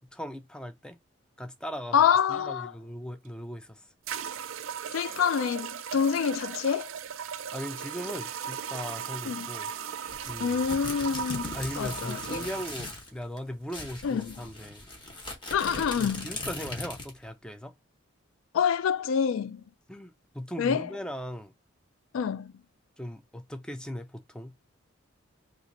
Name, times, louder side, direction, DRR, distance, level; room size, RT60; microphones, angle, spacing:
voice 1, 0.1-1.0 1.4-3.9 7.5-9.7 10.3-10.6 11.5-14.9 16.0-17.7 19.9-21.5 23.0-24.5, equal, 5° left, 0.3 m, -38 dB
voice 2, 1.9-2.7 4.9-6.9 9.3-9.5 10.4-12.5 14.0-14.3 15.5-16.3 18.5-19.6 20.6-20.9 22.1-22.5, left 7 dB, 85° left, 0.3 m, -27 dB
sound 1, 3.3-3.4 4.1-12.8, right 8 dB, 75° right, 0.4 m, -37 dB
sound 2, 10.1-13.1 13.4-13.5 13.7-17.2, left 2 dB, 25° left, 0.9 m, -39 dB
2.9 x 2.5 x 3.8 m
head